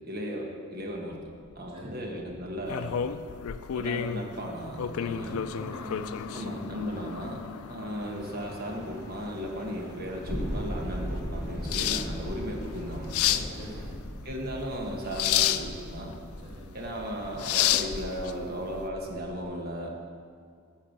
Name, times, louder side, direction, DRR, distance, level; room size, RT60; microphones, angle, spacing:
voice 1, 0.0-1.2 1.5-3.0 3.7-5.5 6.3-7.4 7.7-13.5 14.2-16.1 16.7-20.0, equal, 45° right, 0 dB, 1.3 m, -36 dB
sound 1, 0.9-19.4, equal, 40° left, 1.6 m, -41 dB
voice 2, 1.7-2.0 4.9-6.6 9.8-10.0 13.5-14.0 16.4-16.7, right 1 dB, 25° right, -7 dB, 2.7 m, -43 dB
sound 2, 2.6-18.8, left 10 dB, 85° left, 0.4 m, -32 dB
sound 3, 8.0-13.9, equal, 15° left, 1.4 m, -46 dB
10.5 x 4.8 x 7.3 m, 2.1 s
head